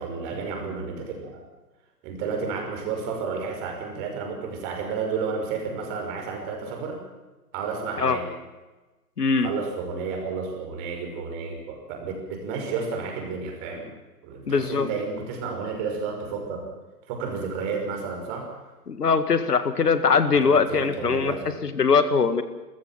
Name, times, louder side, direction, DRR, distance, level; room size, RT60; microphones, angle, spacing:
voice 1, 0.0-1.4 2.0-7.0 7.5-8.3 9.4-13.9 14.2-16.7 17.1-18.5 20.4-21.4, right 5 dB, 30° right, 3 dB, 5.9 m, -31 dB
voice 2, 9.2-9.5 14.5-14.9 18.9-22.4, left 5 dB, 70° left, 11 dB, 1.9 m, -21 dB
29.0 x 15.0 x 7.5 m, 1.1 s
figure-of-eight pair, 130°, 49 cm